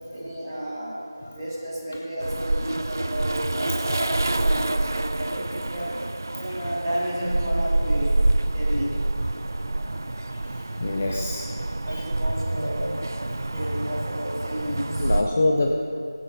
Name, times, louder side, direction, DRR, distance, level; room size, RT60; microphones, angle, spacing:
voice 1, 0.1-6.0 6.4-8.1 8.5-8.9 11.8-13.2 13.5-15.1, equal, 5° right, -14 dB, 2.3 m, -31 dB
sound 1, 2.2-15.2, right 2 dB, 45° right, 0.4 m, -27 dB
voice 2, 10.3-11.5 11.9-12.0 13.3-13.6 15.0-15.8, left 2 dB, 20° left, 1 dB, 0.4 m, -26 dB
19.0 x 9.4 x 2.7 m, 2.5 s
figure-of-eight pair, 175°, 2 cm